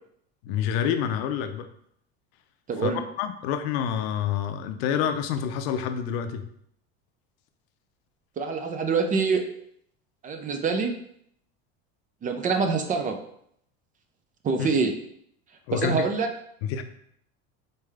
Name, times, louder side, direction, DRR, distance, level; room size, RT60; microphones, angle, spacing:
voice 1, 0.4-1.7 2.8-2.9 3.2-6.5 14.6-14.7 15.7-16.1 16.7-16.8, left 8 dB, 85° left, 8 dB, 0.6 m, -27 dB
voice 2, 2.7-3.0 8.4-9.4 10.2-10.9 12.2-13.2 14.4-14.9 15.7-16.3, right 5 dB, 25° right, 5 dB, 0.5 m, -25 dB
4.2 x 3.3 x 3.5 m, 0.69 s
cardioid pair, 135°, 30 cm